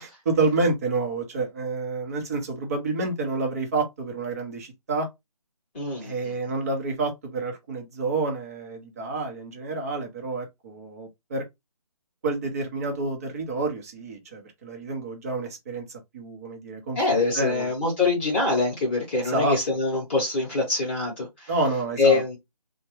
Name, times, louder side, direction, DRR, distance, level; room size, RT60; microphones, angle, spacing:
voice 1, 0.0-5.1 6.0-11.4 12.2-15.8 16.1-17.0 17.3-17.7 19.2-19.6 21.5-22.2, right 3 dB, 25° right, 0.8 m, -28 dB
voice 2, 5.7-6.4 16.9-21.5 22.0-22.4, left 3 dB, 20° left, 1.0 m, -24 dB
3.2 x 2.2 x 3.0 m
figure-of-eight pair, 160°, 20 cm